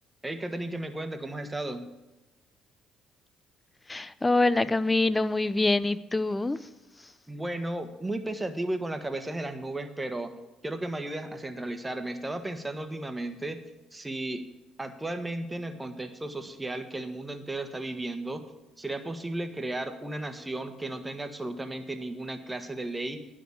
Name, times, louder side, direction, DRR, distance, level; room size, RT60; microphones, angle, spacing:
voice 1, 0.2-1.8 7.3-10.3 10.6-13.6 13.9-14.4 14.8-18.4 18.8-23.3, right 1 dB, 15° right, 7 dB, 1.4 m, -34 dB
voice 2, 3.9-6.7 7.0-7.1, left 2 dB, 20° left, 15 dB, 0.6 m, -25 dB
10.5 x 6.2 x 8.5 m, 1.0 s
supercardioid pair, 65°, 0 cm